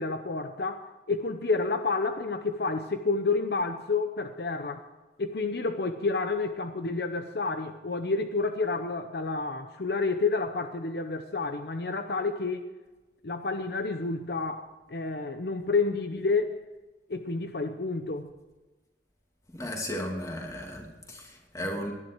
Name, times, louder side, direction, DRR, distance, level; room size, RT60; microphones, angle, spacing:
voice 1, 0.0-4.8 5.2-12.6 13.2-16.7 17.1-18.3, left 3 dB, 60° left, 0.8 m, -29 dB
voice 2, 19.5-21.9, left 1 dB, 20° left, 2.7 m, -35 dB
18.5 x 11.0 x 4.6 m
head